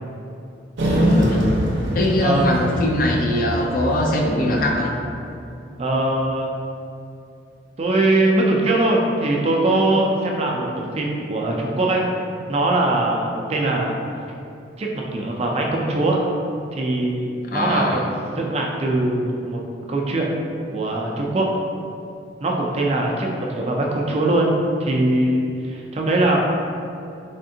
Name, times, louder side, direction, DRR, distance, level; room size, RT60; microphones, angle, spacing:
voice 1, 0.8-1.4 1.9-4.9 17.5-18.0, left 1 dB, 50° left, 0 dB, 0.4 m, -21 dB
sound 1, 0.8-5.3, equal, 80° right, 0.6 m, -24 dB
voice 2, 2.2-2.6 5.8-6.6 7.8-12.0 12.5-13.9 14.8-16.2 16.7-18.0 18.3-19.6 19.9-20.3 20.7-21.5 22.4-24.5 24.8-26.4, right 2 dB, 35° right, -1 dB, 0.4 m, -21 dB
3.5 x 3.3 x 2.7 m, 2.6 s
head